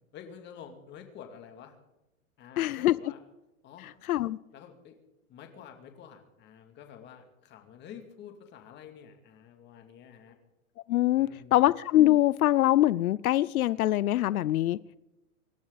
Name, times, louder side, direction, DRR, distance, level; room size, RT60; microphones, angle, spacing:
voice 1, 0.1-1.8 2.4-3.2 3.6-4.0 4.5-5.0 5.3-10.4 11.2-11.7, left 8 dB, 25° left, 2.4 m, -49 dB
voice 2, 2.6-3.0 4.1-4.4 10.9-14.8, left 14 dB, 90° left, 0.6 m, -23 dB
25.5 x 12.0 x 4.0 m
supercardioid pair, 150°, 42 cm